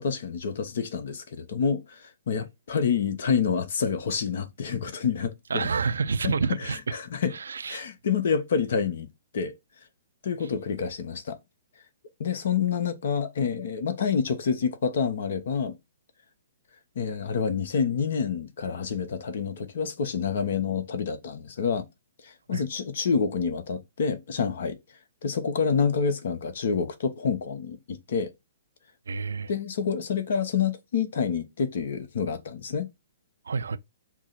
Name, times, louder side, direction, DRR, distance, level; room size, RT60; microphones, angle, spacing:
voice 1, 0.0-5.7 6.2-6.3 6.6-7.3 7.7-9.1 9.3-9.5 10.2-11.4 12.2-15.7 17.0-21.9 22.2-24.8 25.2-28.3 29.5-32.9, left 6 dB, 60° left, 0.8 m, -28 dB
voice 2, 5.5-6.8 7.3-7.8 22.5-22.6 29.1-29.5 33.5-33.8, right 5 dB, 70° right, 0.4 m, -28 dB
6.0 x 2.0 x 4.1 m
figure-of-eight pair, 120°, 0 cm